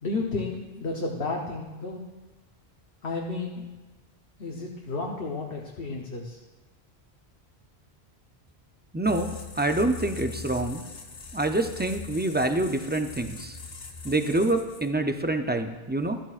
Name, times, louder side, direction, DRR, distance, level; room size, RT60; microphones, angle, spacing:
voice 1, 0.0-2.0 3.0-3.7 4.4-6.4, left 3 dB, 65° left, -1 dB, 1.2 m, -32 dB
voice 2, 8.9-10.8 11.3-13.6 14.0-16.2, right 2 dB, 15° right, 6 dB, 0.4 m, -26 dB
sound 1, 9.0-15.1, left 5 dB, 45° left, 1.0 m, -41 dB
13.5 x 12.5 x 2.5 m, 1.2 s
omnidirectional pair, 1.1 m